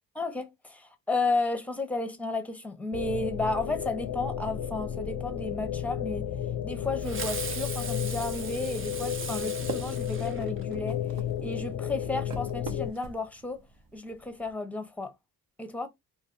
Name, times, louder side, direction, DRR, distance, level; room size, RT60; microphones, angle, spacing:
voice 1, 0.2-6.2 6.6-11.0 11.4-13.6 13.9-15.1 15.6-15.9, left 2 dB, 5° left, 0.7 m, -33 dB
sound 1, 2.9-12.9, left 10 dB, 50° left, 0.5 m, -33 dB
Fireworks, 7.0-10.9, right 5 dB, 35° right, 0.6 m, -39 dB
sound 2, 9.4-14.5, right 4 dB, 65° right, 0.8 m, -44 dB
2.4 x 2.4 x 2.4 m
cardioid pair, 65°, 38 cm